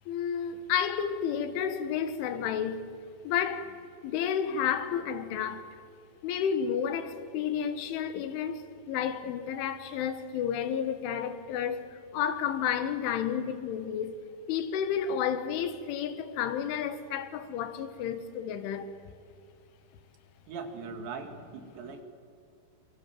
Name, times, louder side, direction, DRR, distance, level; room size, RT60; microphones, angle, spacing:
voice 1, 0.1-2.9 3.2-3.8 4.0-5.8 6.2-14.2 14.5-18.9, left 8 dB, 85° left, 4.0 m, -31 dB
voice 2, 20.5-22.0, right 5 dB, 70° right, 4.5 m, -40 dB
27.5 x 25.0 x 7.6 m
omnidirectional pair, 5.4 m